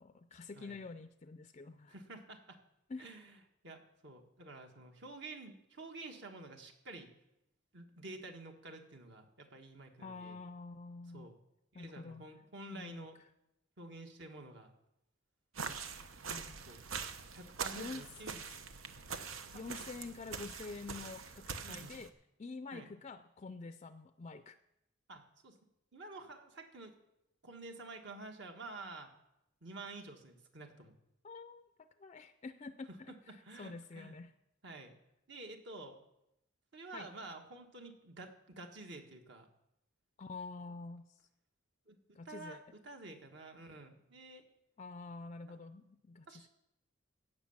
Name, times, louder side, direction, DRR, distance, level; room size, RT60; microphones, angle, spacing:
voice 1, 0.0-1.9 2.9-3.1 10.0-11.3 11.7-12.2 12.7-13.1 16.3-16.6 17.7-18.1 19.5-22.1 22.4-24.6 31.2-34.3 36.9-37.1 40.2-41.2 42.1-42.6 44.8-46.5, left 3 dB, 35° left, 11 dB, 0.4 m, -47 dB
voice 2, 1.9-2.6 3.0-3.4 3.6-7.1 7.7-10.4 11.1-11.4 11.7-13.2 13.8-14.7 15.6-15.8 16.7-16.8 17.3-18.5 19.5-19.6 21.6-22.0 22.7-22.9 25.1-25.6 25.9-27.0 27.4-29.1 29.6-31.0 33.1-34.2 34.6-35.0 35.3-36.0 36.7-39.5 41.9-42.0 42.3-44.4 45.4-45.6 46.3-46.5, right 2 dB, 60° right, 4 dB, 1.7 m, -50 dB
sound 1, 15.6-22.1, right 5 dB, 85° right, 1.0 m, -44 dB
17.0 x 6.6 x 7.3 m, 0.85 s
head